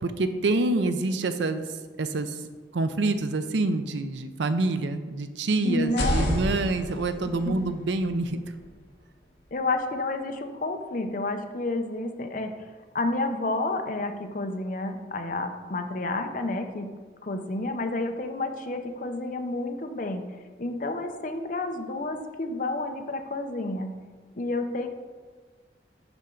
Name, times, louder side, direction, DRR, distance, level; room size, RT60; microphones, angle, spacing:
voice 1, 0.0-1.7 2.0-2.3 2.7-8.4, right 2 dB, 80° right, 10 dB, 0.5 m, -26 dB
voice 2, 5.6-6.3 7.3-7.6 9.5-12.5 12.9-16.9 17.2-20.2 20.6-23.9 24.4-24.9, left 2 dB, 45° left, 6 dB, 0.6 m, -30 dB
sound 1, 5.8-9.6, equal, 65° left, 1.1 m, -32 dB
11.0 x 4.4 x 3.8 m, 1.5 s
head